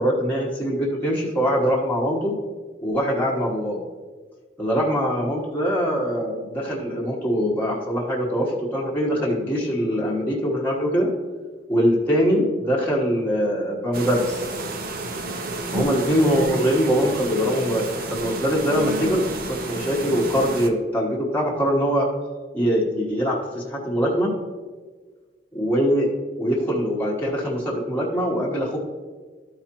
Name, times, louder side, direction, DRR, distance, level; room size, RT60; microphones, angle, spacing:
voice 1, 0.0-2.4 2.8-3.8 4.6-11.1 11.7-14.4 15.7-22.1 22.5-24.3 25.5-26.1 26.4-28.8, equal, 10° left, -6 dB, 1.2 m, -23 dB
sound 1, 13.9-20.7, right 2 dB, 55° right, 0.7 m, -30 dB
13.0 x 4.9 x 2.9 m, 1.4 s
head